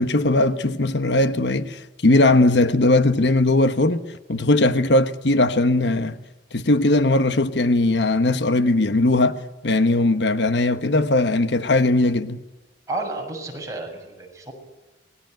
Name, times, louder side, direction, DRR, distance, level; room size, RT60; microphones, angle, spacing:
voice 1, 0.0-4.0 4.3-6.2 6.5-12.4, left 2 dB, 75° left, 1.2 m, -19 dB
voice 2, 12.9-14.5, right 2 dB, 20° right, 6.8 m, -31 dB
27.5 x 20.0 x 9.2 m
head